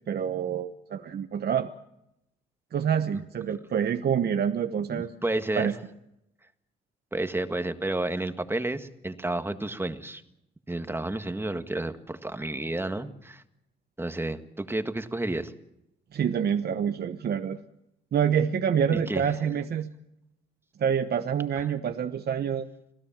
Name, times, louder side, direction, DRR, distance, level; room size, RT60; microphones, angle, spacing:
voice 1, 0.0-1.7 2.7-5.1 5.6-5.7 16.1-17.6 18.1-19.9 20.8-22.7, right 8 dB, 55° right, 8 dB, 1.1 m, -27 dB
voice 2, 4.9-5.7 7.1-10.2 10.7-13.4 14.0-15.5 18.9-19.2 21.6-21.7, right 2 dB, 10° right, 8 dB, 1.7 m, -31 dB
27.0 x 17.0 x 7.4 m, 0.85 s
cardioid pair, 90°, 20 cm